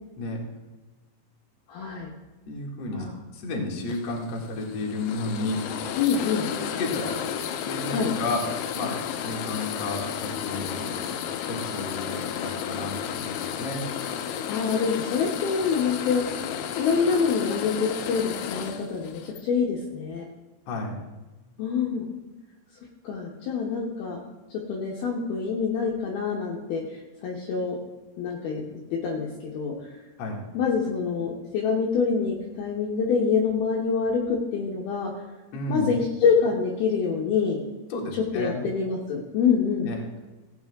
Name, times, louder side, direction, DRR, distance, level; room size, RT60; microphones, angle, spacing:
voice 1, 1.7-2.1 2.9-3.1 6.0-6.5 7.9-8.1 14.5-16.2 16.7-20.3 21.6-22.1 23.0-24.2 24.7-26.8 27.2-27.8 28.2-28.6 28.9-29.7 30.5-35.1 35.7-37.6 38.1-39.9, left 5 dB, 70° left, -1 dB, 2.7 m, -26 dB
voice 2, 2.5-3.1 3.3-5.6 6.5-7.3 7.6-8.4 8.7-11.1 11.4-13.8 20.7-21.0 30.2-30.4 35.5-35.9 37.9-38.6 39.8-40.0, left 2 dB, 50° left, -1 dB, 2.3 m, -32 dB
sound 1, 3.9-19.4, left 8 dB, 90° left, 3.2 m, -33 dB
16.5 x 8.8 x 3.6 m, 1.2 s
omnidirectional pair, 5.2 m